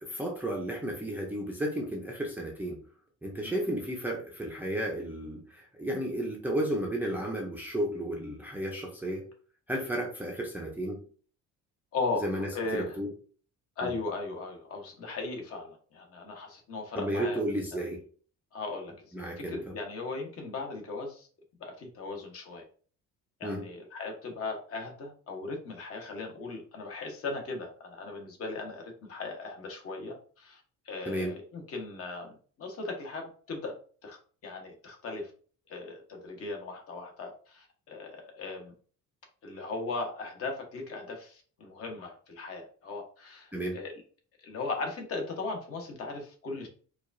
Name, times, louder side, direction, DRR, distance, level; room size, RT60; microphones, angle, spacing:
voice 1, 0.0-2.8 3.2-9.2 9.7-11.0 12.2-13.1 13.8-13.9 17.0-18.0 19.1-19.7 23.4-23.6 31.1-31.3 43.5-43.8, right 1 dB, 5° right, -1 dB, 0.5 m, -33 dB
voice 2, 11.9-13.0 13.8-17.4 17.7-17.8 18.5-21.3 21.6-22.6 23.4-32.3 32.6-34.2 34.4-35.3 35.7-38.7 39.4-44.0 44.4-46.7, left 3 dB, 50° left, 2 dB, 1.0 m, -38 dB
4.6 x 2.3 x 2.5 m, 0.42 s
cardioid pair, 165°, 31 cm